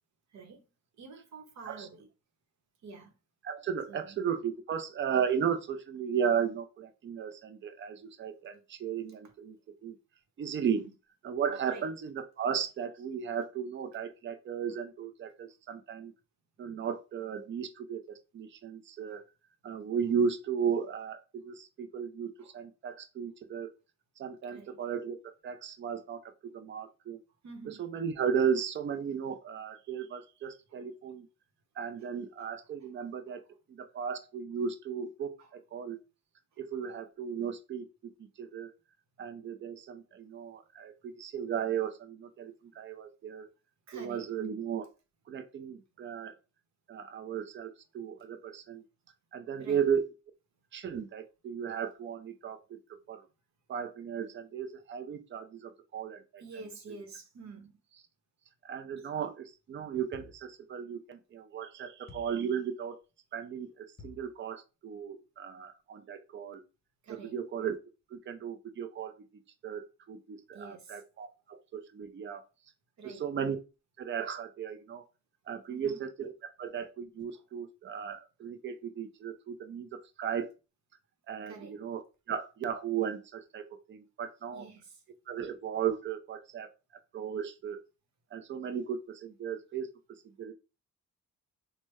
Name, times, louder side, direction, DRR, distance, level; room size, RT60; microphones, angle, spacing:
voice 1, 1.0-2.1 2.8-3.1 3.9-4.2 10.8-10.9 11.6-11.8 19.1-19.2 22.4-22.5 24.5-24.8 27.4-27.9 30.7-30.8 32.8-32.9 33.3-33.4 35.4-35.5 36.7-36.8 43.9-44.3 49.6-49.8 56.4-57.7 67.0-67.3 70.5-71.0 73.0-73.3 75.7-76.1 77.3-77.4 81.5-81.8 84.5-85.0, right 4 dB, 65° right, 0.9 m, -48 dB
voice 2, 3.4-9.6 9.8-10.0 10.4-10.8 11.2-16.1 16.6-19.2 19.6-23.7 24.2-27.2 27.7-31.3 31.8-33.4 33.7-36.0 36.6-38.7 39.2-43.5 43.9-44.9 45.3-46.4 46.9-48.8 49.3-50.0 50.7-52.8 53.1-53.3 53.7-56.4 58.6-63.0 63.3-66.6 67.1-67.8 68.1-69.1 69.6-72.4 73.0-73.6 74.0-75.0 75.5-80.5 81.3-82.0 82.3-84.6 85.3-86.7 87.1-87.8 88.3-89.9 90.4-90.5, right 7 dB, 40° right, 0.5 m, -35 dB
sound 1, 60.1-60.6 62.1-62.5 64.0-64.4, left 4 dB, 35° left, 0.6 m, -51 dB
3.3 x 2.1 x 3.1 m
cardioid pair, 90°, 30 cm